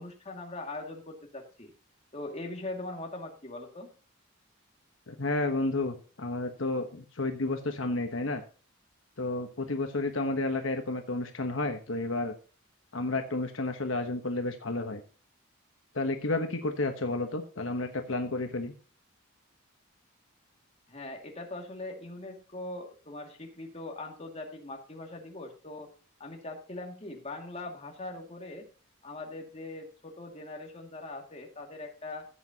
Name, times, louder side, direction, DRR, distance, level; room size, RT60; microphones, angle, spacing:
voice 1, 0.0-1.7 2.1-3.9 20.9-25.9 26.2-28.7 29.0-32.3, left 2 dB, 30° left, 2 dB, 2.2 m, -41 dB
voice 2, 5.1-8.4 9.2-12.3 12.9-15.0 15.9-18.7, left 2 dB, 65° left, 6 dB, 1.1 m, -31 dB
15.0 x 8.5 x 2.9 m, 0.37 s
head